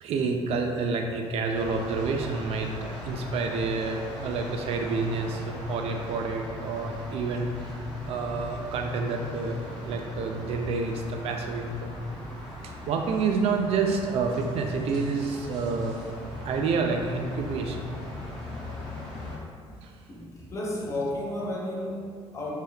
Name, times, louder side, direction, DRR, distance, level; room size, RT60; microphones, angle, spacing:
voice 1, 0.0-11.9 12.9-16.0 16.4-17.9 19.7-20.1, right 4 dB, 65° right, 3 dB, 0.4 m, -29 dB
sound 1, 1.5-19.4, left 1 dB, 10° left, 1.1 m, -39 dB
voice 2, 20.1-22.6, left 1 dB, 25° left, -4 dB, 0.6 m, -33 dB
3.4 x 2.7 x 2.3 m, 2.1 s
cardioid pair, 130°, 11 cm